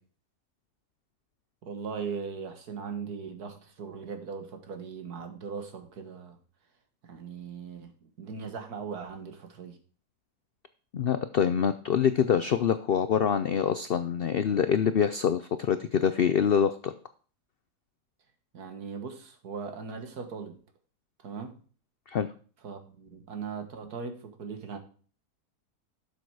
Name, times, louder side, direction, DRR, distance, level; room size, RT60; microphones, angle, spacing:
voice 1, 1.6-6.4 7.1-9.8 18.5-20.5 21.2-21.6 22.6-24.8, right 5 dB, 75° right, 2.0 m, -39 dB
voice 2, 10.9-16.9 22.1-22.3, left 8 dB, 75° left, 0.5 m, -25 dB
12.0 x 7.0 x 4.7 m
omnidirectional pair, 1.7 m